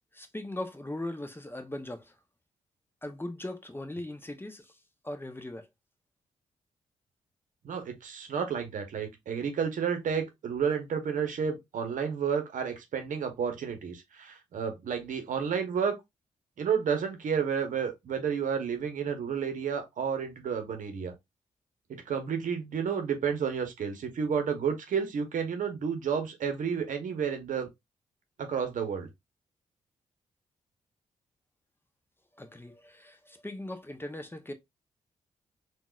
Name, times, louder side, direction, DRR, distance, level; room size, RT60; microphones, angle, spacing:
voice 1, 0.1-2.1 3.0-4.7 5.0-5.7 32.4-34.5, left 1 dB, 15° left, 0.8 m, -39 dB
voice 2, 7.6-16.0 16.6-21.1 21.9-27.7 28.4-29.1, right 6 dB, 65° right, 0.9 m, -31 dB
3.8 x 2.4 x 2.4 m
supercardioid pair, 45°, 14 cm